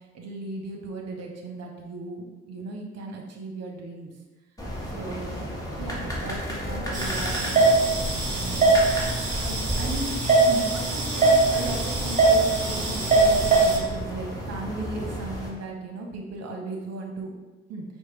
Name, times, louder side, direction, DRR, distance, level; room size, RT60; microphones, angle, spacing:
voice 1, 0.1-4.1 4.9-5.4 5.8-8.7 9.4-10.1 10.5-17.3 17.7-17.8, right 2 dB, 50° right, 1 dB, 0.8 m, -36 dB
sound 1, 4.6-15.5, equal, 10° left, 1.2 m, -33 dB
sound 2, 6.9-13.8, right 3 dB, 25° right, 1.2 m, -22 dB
4.4 x 2.2 x 3.0 m, 1.1 s
hypercardioid pair, 45°, 32 cm